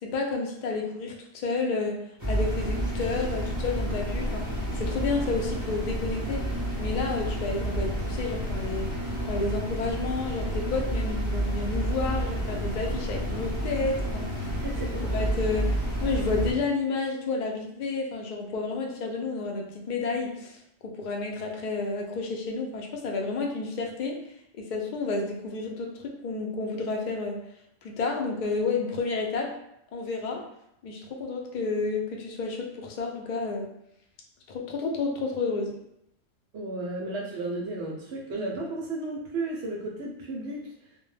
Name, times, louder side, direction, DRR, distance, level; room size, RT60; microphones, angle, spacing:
voice 1, 0.0-4.5 4.7-6.5 6.8-8.9 9.2-14.5 15.0-24.2 24.5-27.4 27.8-29.5 29.9-30.5 30.8-33.7 34.5-35.8, left 3 dB, 85° left, 1 dB, 0.4 m, -31 dB
sound 1, 2.2-16.5, right 1 dB, 25° right, 0.4 m, -30 dB
voice 2, 36.5-40.6, right 2 dB, 65° right, -1 dB, 0.7 m, -33 dB
2.1 x 2.1 x 3.1 m, 0.78 s
omnidirectional pair, 1.4 m